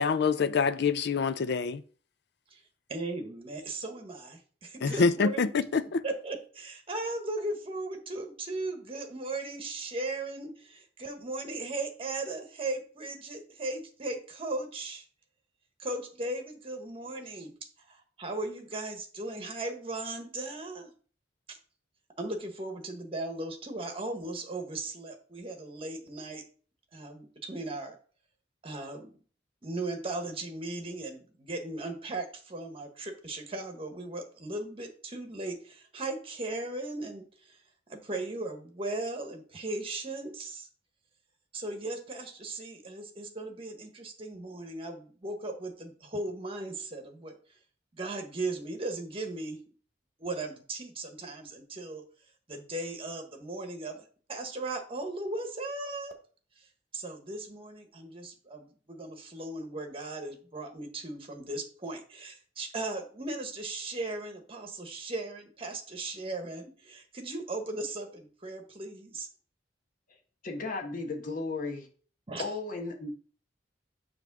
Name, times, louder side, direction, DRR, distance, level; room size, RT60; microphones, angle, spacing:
voice 1, 0.0-1.8 4.8-6.0, left 5 dB, 65° left, 0.4 m, -26 dB
voice 2, 2.9-5.6 6.0-15.1 15.8-17.5 17.9-20.9 21.5-21.6 22.2-26.5 26.9-28.0 28.6-29.1 29.6-37.6 37.9-40.7 41.5-47.3 47.9-49.6 50.2-52.0 52.5-54.0 54.3-56.1 56.6-56.7 56.9-69.3 72.3-72.4, right 2 dB, 30° right, 1.2 m, -37 dB
voice 3, 70.4-71.9 72.4-73.1, left 3 dB, 50° left, 1.2 m, -35 dB
7.0 x 3.1 x 5.9 m
head